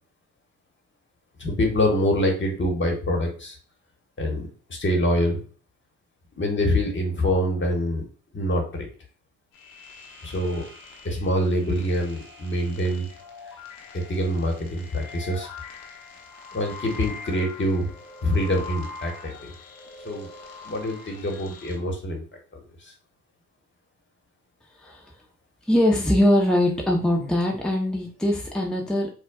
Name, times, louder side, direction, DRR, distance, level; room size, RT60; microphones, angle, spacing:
voice 1, 1.4-3.5 4.2-5.4 6.4-8.0 8.3-8.9 10.2-10.6 11.0-13.1 13.9-15.5 16.5-17.9 18.2-19.5 20.0-20.3 20.6-22.2 22.5-22.9, equal, 35° left, 2 dB, 1.3 m, -25 dB
sound 1, 9.5-21.8, left 4 dB, 80° left, 0.8 m, -43 dB
voice 2, 24.8-25.1 25.7-29.1, left 1 dB, ahead, -1 dB, 0.7 m, -22 dB
4.2 x 2.3 x 2.3 m, 0.40 s
hypercardioid pair, 45°, 33 cm